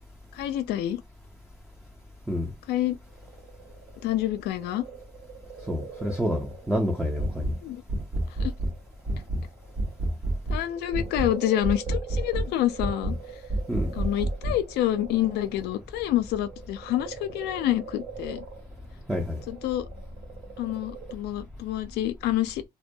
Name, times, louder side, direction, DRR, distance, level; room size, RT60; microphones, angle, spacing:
voice 1, 0.3-1.0 2.7-3.0 4.0-4.8 7.6-7.8 8.4-8.5 10.5-13.2 13.9-18.4 19.5-19.9 20.6-22.6, left 13 dB, 80° left, 0.4 m, -27 dB
sound 1, 2.7-7.8 8.3-10.0 10.4-21.1, right 7 dB, 75° right, 0.9 m, -44 dB
voice 2, 5.7-7.5 13.7-13.9 19.1-19.4, equal, ahead, 0.4 m, -28 dB
sound 2, 7.2-7.6 7.9-8.8 9.1-9.5 9.8-10.6 10.9-11.3 11.6-12.5 12.8-13.2 13.5-14.6, right 1 dB, 45° right, 0.7 m, -28 dB
2.2 x 2.1 x 2.6 m
cardioid pair, 110°, 17 cm